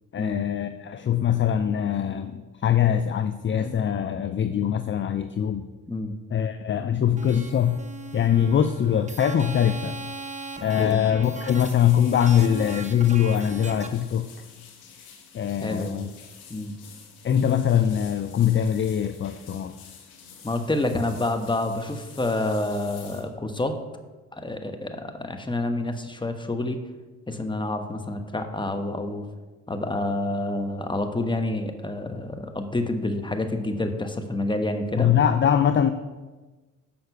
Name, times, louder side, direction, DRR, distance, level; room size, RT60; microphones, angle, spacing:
voice 1, 0.1-5.6 6.3-7.8 8.1-9.9 10.6-14.3 15.3-16.1 17.2-19.8 35.0-35.9, left 9 dB, 35° left, 10 dB, 0.5 m, -22 dB
sound 1, 7.2-13.9, right 4 dB, 20° right, 1.0 m, -39 dB
sound 2, 8.9-9.2 9.4-9.7 10.0-10.1 11.0-23.2, left 6 dB, 80° left, 1.5 m, -49 dB
voice 2, 15.6-16.0 16.5-16.7 20.4-23.8 24.3-26.8 27.3-29.3 29.7-35.1, left 2 dB, 15° left, 6 dB, 1.1 m, -28 dB
6.8 x 5.6 x 6.8 m, 1.2 s
supercardioid pair, 60°, 36 cm